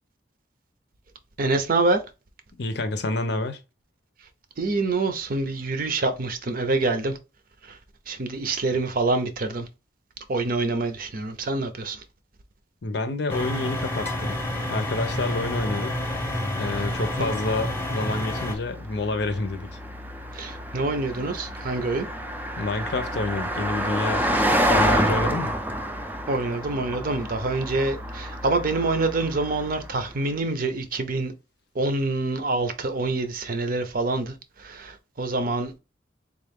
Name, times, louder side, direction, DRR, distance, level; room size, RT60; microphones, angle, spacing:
voice 1, 1.4-2.0 4.6-7.2 7.6-7.8 8.1-9.7 10.3-12.0 17.2-17.3 20.3-22.1 26.3-31.3 31.7-35.7, right 3 dB, 50° right, 0.6 m, -26 dB
voice 2, 2.5-3.6 12.8-16.0 16.6-19.7 22.6-25.5, left 2 dB, 65° left, 0.6 m, -28 dB
sound 1, 13.3-18.5, left 1 dB, 15° left, 0.8 m, -29 dB
Car passing by, 14.4-30.1, equal, 10° right, 0.4 m, -30 dB
3.7 x 2.4 x 3.4 m
head